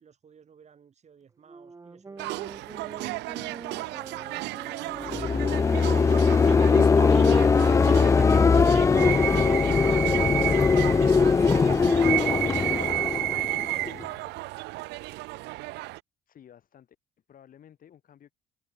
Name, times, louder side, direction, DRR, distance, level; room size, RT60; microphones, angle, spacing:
voice 1, 0.0-3.2 3.8-4.9, right 7 dB, 40° right, 5.8 m, -56 dB
sound 1, 1.4-11.5, right 4 dB, 20° right, 1.0 m, -45 dB
sound 2, 2.2-16.0, right 20 dB, 85° right, 0.6 m, -32 dB
sound 3, 5.0-14.0, left 5 dB, 15° left, 0.3 m, -21 dB
voice 2, 16.3-17.0 17.3-18.3, left 9 dB, 55° left, 7.9 m, -55 dB
cardioid pair, 105°, 17 cm